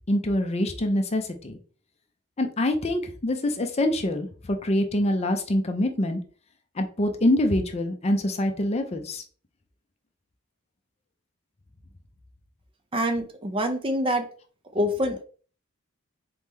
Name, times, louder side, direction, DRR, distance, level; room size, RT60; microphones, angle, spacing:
voice 1, 0.1-1.6 2.4-4.3 4.6-6.2 6.8-9.2, left 1 dB, 30° left, 6 dB, 0.5 m, -25 dB
voice 2, 12.9-14.3 14.7-15.2, equal, 25° right, 6 dB, 0.5 m, -25 dB
4.1 x 3.1 x 3.6 m, 0.41 s
head